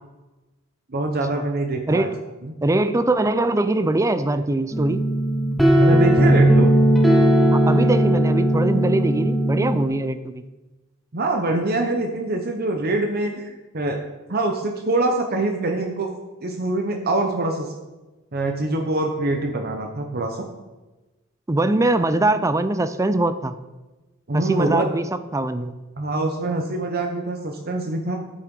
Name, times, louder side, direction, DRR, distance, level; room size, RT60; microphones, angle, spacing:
voice 1, 0.9-2.1 2.4-2.5 5.8-6.7 11.1-13.5 13.7-14.0 14.3-16.1 16.4-17.7 18.3-20.5 24.3-24.9 26.0-28.2, right 2 dB, 50° right, 4 dB, 0.9 m, -24 dB
voice 2, 1.9-2.2 2.6-5.0 7.5-10.4 21.5-23.6 24.3-25.0 25.3-25.7, right 2 dB, 15° right, 12 dB, 0.5 m, -22 dB
sound 1, 4.7-9.8, right 1 dB, ahead, 1.4 m, -17 dB
8.8 x 8.4 x 5.3 m, 1.1 s
head